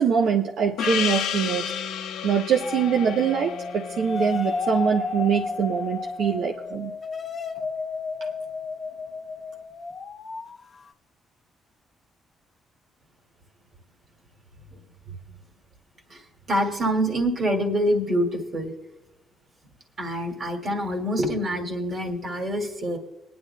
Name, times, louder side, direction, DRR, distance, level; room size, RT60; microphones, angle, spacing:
voice 1, 0.0-1.7 2.2-6.9, right 7 dB, 75° right, 1 dB, 0.7 m, -23 dB
Gong, 0.8-5.5, left 8 dB, 85° left, 0.7 m, -32 dB
sound 1, 2.6-10.8, left 4 dB, 45° left, 0.7 m, -32 dB
voice 2, 16.5-18.7 20.0-23.0, equal, 45° right, 2 dB, 2.1 m, -25 dB
21.5 x 10.5 x 2.2 m, 0.91 s
cardioid pair, 90°, 0 cm